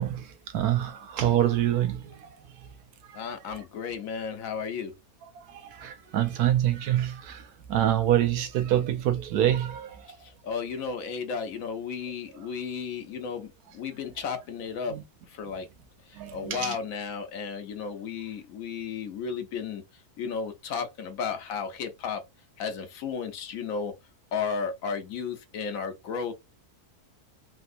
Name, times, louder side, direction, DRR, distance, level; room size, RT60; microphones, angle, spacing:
voice 1, 0.0-2.3 3.1-3.2 5.4-10.1 14.9-15.0 16.2-16.8, right 12 dB, 85° right, 1.1 m, -26 dB
voice 2, 3.1-4.9 10.4-15.0 15.3-15.7 16.1-19.8 20.2-22.2 22.6-23.9 24.3-26.3, left 6 dB, 70° left, 1.0 m, -33 dB
3.4 x 2.8 x 2.5 m
omnidirectional pair, 1.6 m